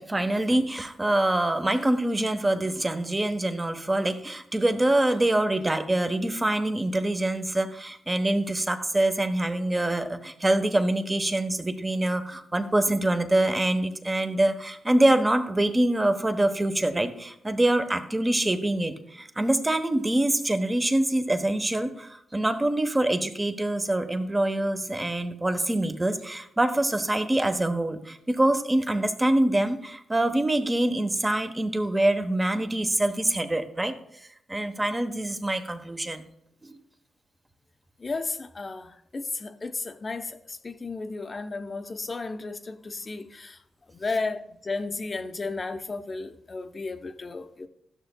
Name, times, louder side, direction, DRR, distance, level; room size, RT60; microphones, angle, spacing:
voice 1, 0.0-33.9 34.5-36.3 36.6-36.8, right 1 dB, 25° right, 1.0 m, -25 dB
voice 2, 38.0-43.6 43.9-47.7, left 3 dB, 40° left, 0.7 m, -34 dB
12.0 x 6.6 x 2.2 m
supercardioid pair, 50°, 0 cm